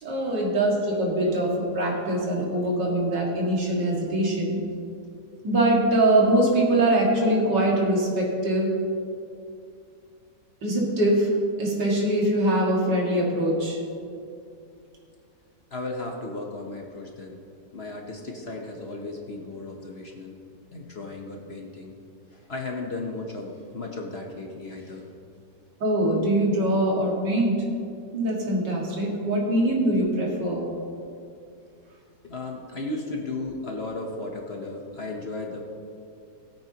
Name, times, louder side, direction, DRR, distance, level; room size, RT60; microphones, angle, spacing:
voice 1, 0.0-4.6 5.4-8.7 10.6-13.8 25.8-27.7 28.1-30.6, right 1 dB, 80° right, -4 dB, 2.8 m, -23 dB
voice 2, 15.7-17.4 17.7-20.4 20.7-22.0 22.3-25.1 32.2-35.6, left 2 dB, 45° left, 1 dB, 1.1 m, -35 dB
19.0 x 8.6 x 2.9 m, 2.5 s
omnidirectional pair, 1.8 m